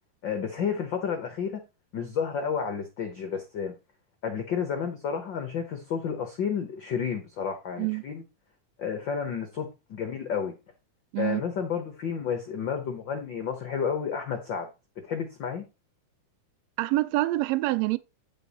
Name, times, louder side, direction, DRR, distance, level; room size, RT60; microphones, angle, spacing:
voice 1, 0.2-1.6 1.9-3.8 4.2-8.2 8.8-10.5 11.2-14.7 15.0-15.6, left 7 dB, 65° left, 1.1 m, -31 dB
voice 2, 16.8-18.0, right 18 dB, 85° right, 1.5 m, -26 dB
9.4 x 5.4 x 4.1 m
omnidirectional pair, 3.6 m